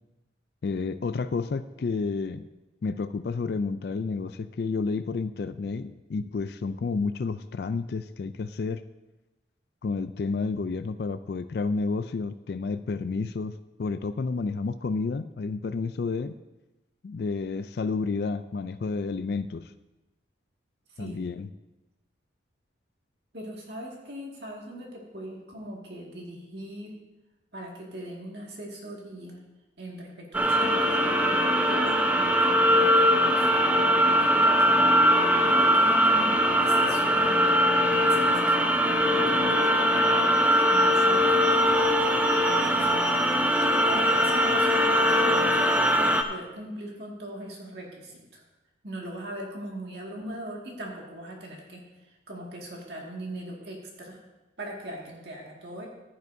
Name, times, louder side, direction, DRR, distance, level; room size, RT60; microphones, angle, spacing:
voice 1, 0.6-2.5 2.8-8.8 9.8-16.3 17.0-19.7 21.0-21.5, left 4 dB, 55° left, 12 dB, 0.3 m, -30 dB
voice 2, 23.3-27.0 27.5-29.4 29.8-34.9 35.4-43.3 43.6-48.4 48.8-54.2 54.6-55.9, right 1 dB, 60° right, -2 dB, 2.0 m, -40 dB
sound 1, 30.3-46.2, equal, 10° right, 0.6 m, -21 dB
15.0 x 11.0 x 2.7 m, 1.1 s
head